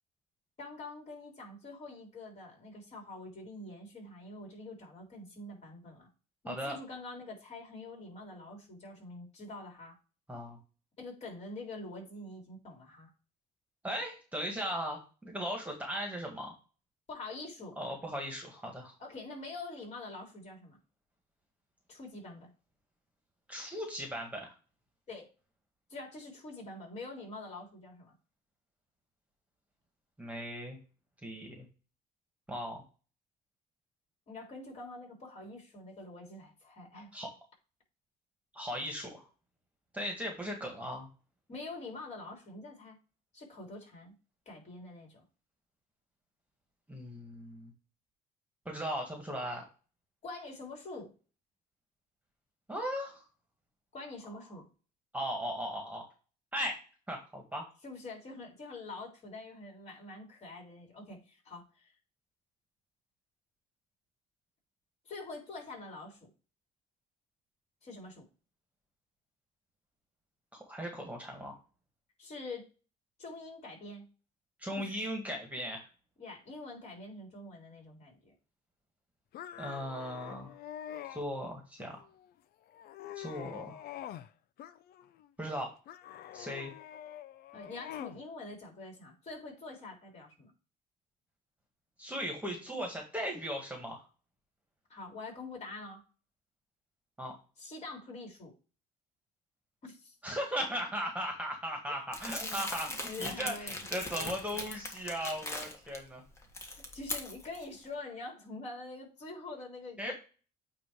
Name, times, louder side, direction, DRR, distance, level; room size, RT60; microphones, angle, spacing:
voice 1, 0.6-6.1 6.4-10.0 11.0-13.1 17.1-17.8 19.0-20.8 21.9-22.5 25.1-25.3 25.9-28.1 34.3-37.1 41.5-43.0 43.3-44.1 44.5-45.2 50.2-51.1 53.9-54.7 57.8-61.9 65.0-66.3 67.8-68.3 72.2-72.7 73.2-74.1 74.8-75.0 76.2-78.3 87.5-90.5 94.9-96.0 97.6-98.5 99.8-100.2 101.9-102.0 102.4-103.8 104.1-104.3 106.9-110.1, left 2 dB, 40° left, 0 dB, 3.6 m, -45 dB
voice 2, 6.5-6.8 10.3-10.6 13.8-16.6 17.8-19.0 23.5-24.5 30.2-30.8 31.2-31.7 32.5-32.8 37.1-37.3 38.5-39.3 39.9-41.1 46.9-47.7 48.7-49.7 52.7-53.3 55.1-56.1 56.5-56.8 57.1-57.6 70.5-71.6 74.6-75.9 79.6-80.5 81.1-82.0 83.2-83.8 85.4-85.7 86.3-86.7 92.0-94.0 97.2-97.3 100.2-106.2 110.0-110.1, equal, 10° right, 2 dB, 1.8 m, -37 dB
sound 1, 79.3-81.2 81.8-82.3 82.7-84.3 84.6-85.3 85.9-88.2, left 11 dB, 65° left, 0.5 m, -46 dB
Crumpling crinkling, 102.1-106.0 106.4-107.6, left 2 dB, 15° left, 1.6 m, -39 dB
8.6 x 2.9 x 4.6 m, 0.35 s
cardioid pair, 110°, 17 cm